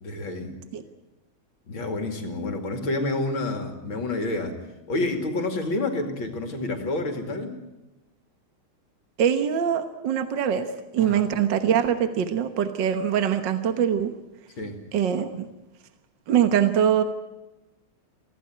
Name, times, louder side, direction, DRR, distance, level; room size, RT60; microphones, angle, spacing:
voice 1, 0.0-0.5 1.7-4.6 4.9-7.6 11.0-11.3 14.6-14.8, left 2 dB, 65° left, 6 dB, 3.2 m, -29 dB
voice 2, 9.2-10.7 10.9-14.1 14.9-15.5 16.3-17.0, right 9 dB, 60° right, 9 dB, 1.8 m, -23 dB
24.5 x 16.0 x 9.4 m, 1.0 s
omnidirectional pair, 2.3 m